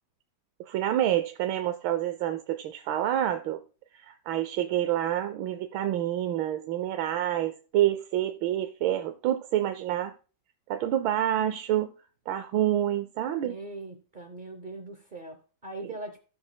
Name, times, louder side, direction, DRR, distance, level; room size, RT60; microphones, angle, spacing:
voice 1, 0.7-3.6 3.9-10.1 10.7-11.9 12.3-13.6, right 12 dB, 85° right, 1.4 m, -28 dB
voice 2, 13.4-16.2, right 2 dB, 55° right, 0.5 m, -41 dB
15.0 x 6.2 x 2.2 m
omnidirectional pair, 2.1 m